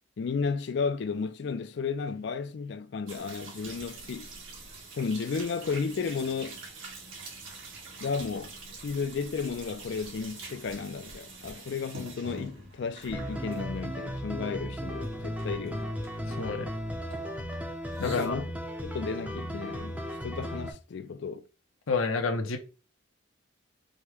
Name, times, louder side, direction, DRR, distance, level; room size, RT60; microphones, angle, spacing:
voice 1, 0.2-4.3 4.9-6.6 8.0-8.6 8.8-15.9 18.0-18.5 18.8-21.5, left 5 dB, 55° left, 0.4 m, -33 dB
sound 1, 3.1-14.4 14.7-16.8 17.1-18.3, right 3 dB, 75° right, 1.6 m, -45 dB
sound 2, 13.1-20.7, equal, 5° right, 0.5 m, -36 dB
voice 2, 16.2-16.7 18.0-18.4 21.9-22.6, left 4 dB, 85° left, 0.8 m, -29 dB
5.1 x 2.1 x 4.6 m
head